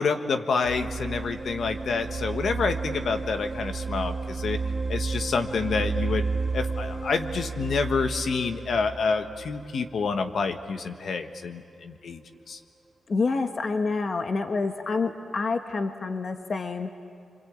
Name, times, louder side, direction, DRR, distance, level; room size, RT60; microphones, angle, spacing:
voice 1, 0.0-4.6 4.9-6.3 6.5-12.2 12.5-12.6, left 5 dB, 65° left, 6 dB, 1.4 m, -28 dB
sound 1, 0.6-10.4, right 4 dB, 30° right, 1.8 m, -32 dB
voice 2, 13.1-16.9, left 4 dB, 45° left, 6 dB, 1.2 m, -27 dB
27.0 x 25.5 x 8.7 m, 2.3 s
wide cardioid pair, 125°, 0 cm